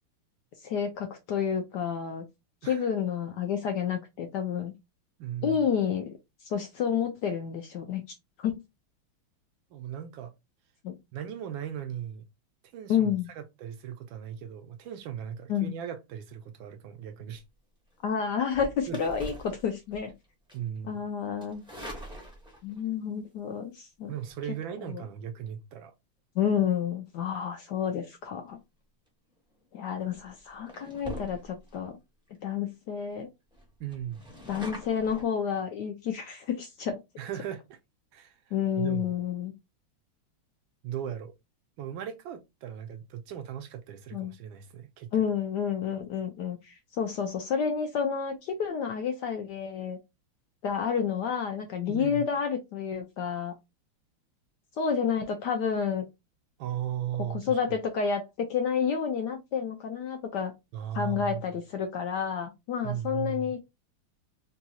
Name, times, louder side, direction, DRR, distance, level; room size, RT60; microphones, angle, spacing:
voice 1, 0.6-2.2 2.6-4.7 5.4-6.1 6.4-8.0 8.4-8.6 10.8-10.9 12.9-13.3 15.5-15.7 18.0-20.1 20.8-21.6 22.6-24.1 24.9-25.0 26.4-28.6 29.7-32.0 32.4-33.3 34.5-37.0 38.5-39.5 44.1-44.3 45.1-50.0 50.6-53.5 54.8-56.1 57.3-60.5 60.9-63.6, left 7 dB, 75° left, 1.0 m, -30 dB
voice 2, 5.2-5.6 9.7-10.3 11.1-12.2 12.7-17.4 18.9-19.0 20.5-21.0 24.1-25.9 33.8-34.3 37.2-37.8 38.1-39.1 40.8-41.3 41.8-45.1 51.9-52.3 56.6-57.8 60.7-61.4 62.8-63.6, right 9 dB, 75° right, 1.2 m, -37 dB
sound 1, 18.4-20.1 20.5-20.8 21.4-22.8 24.1-24.3 29.4-29.6 30.1-30.3 30.7-31.8 32.3-32.4 32.6-32.7 33.0-33.1 33.5-35.2, left 1 dB, 5° right, 0.5 m, -43 dB
4.0 x 2.3 x 2.8 m
omnidirectional pair, 2.4 m